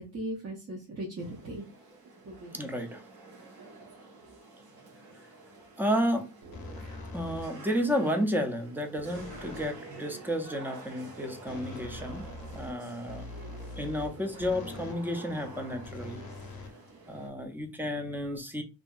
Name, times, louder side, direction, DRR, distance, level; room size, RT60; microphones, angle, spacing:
voice 1, 0.0-1.7 2.2-2.7, right 1 dB, 40° right, -3 dB, 0.7 m, -38 dB
sound 1, 1.2-17.3, right 3 dB, 60° right, 0.9 m, -50 dB
voice 2, 2.5-3.0 5.8-6.3 7.1-12.2 12.5-13.3 13.8-16.2 17.1-18.6, equal, 5° right, 5 dB, 0.4 m, -31 dB
sound 2, 6.4-8.7 8.9-16.5, right 2 dB, 80° right, 1.4 m, -52 dB
sound 3, 6.5-7.7 9.1-9.8 11.5-15.1 15.8-17.3, left 2 dB, 60° left, 0.6 m, -43 dB
2.7 x 2.5 x 2.3 m, 0.31 s
wide cardioid pair, 125°, 40 cm